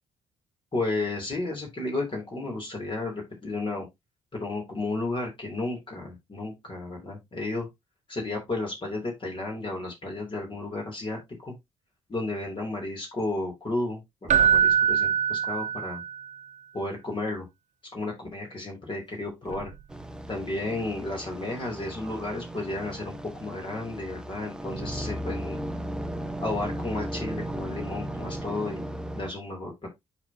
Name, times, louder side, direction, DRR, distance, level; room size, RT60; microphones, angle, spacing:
voice 1, 0.7-3.8 4.3-7.7 8.1-11.5 12.1-16.0 16.7-17.4 17.9-19.7 20.3-25.6 26.4-29.9, left 2 dB, 35° left, -1 dB, 3.3 m, -33 dB
Keyboard (musical), 14.3-16.3 19.5-19.7, right 8 dB, 50° right, 1.3 m, -23 dB
sound 1, 19.9-29.3, right 1 dB, 5° right, 1.1 m, -36 dB
10.5 x 4.2 x 2.9 m, 0.19 s
hypercardioid pair, 45°, 15 cm